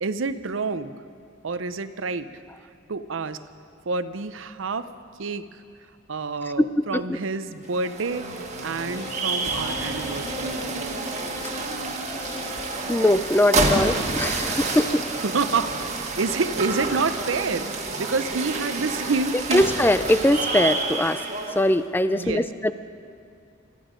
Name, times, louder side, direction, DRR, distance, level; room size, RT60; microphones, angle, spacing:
voice 1, 0.0-0.9 1.4-2.4 2.9-3.4 3.9-4.9 5.2-5.6 6.1-10.8 15.2-19.6 22.1-22.7, right 4 dB, 80° right, 12 dB, 0.6 m, -28 dB
voice 2, 6.6-7.2 12.2-12.3 12.9-15.0 19.5-21.2 21.6-22.7, left 1 dB, 10° left, 12 dB, 0.4 m, -21 dB
sound 1, 7.6-21.7, right 3 dB, 35° right, 1.4 m, -29 dB
sound 2, 8.1-13.9 14.4-15.0 15.4-16.1 16.5-17.2 17.6-18.2 18.7-19.3, left 2 dB, 75° left, 2.1 m, -41 dB
20.5 x 13.5 x 5.2 m, 2.5 s
head